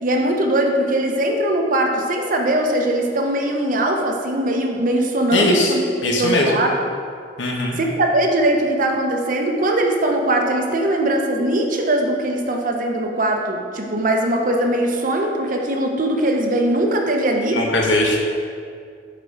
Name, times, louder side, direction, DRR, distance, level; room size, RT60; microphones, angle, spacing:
voice 1, 0.0-6.9 7.8-17.6, right 1 dB, 50° right, 2 dB, 0.8 m, -20 dB
voice 2, 5.3-5.7 6.0-6.5 7.4-7.8 17.5-18.2, left 2 dB, 80° left, -1 dB, 1.1 m, -19 dB
7.6 x 4.2 x 4.7 m, 2.2 s
head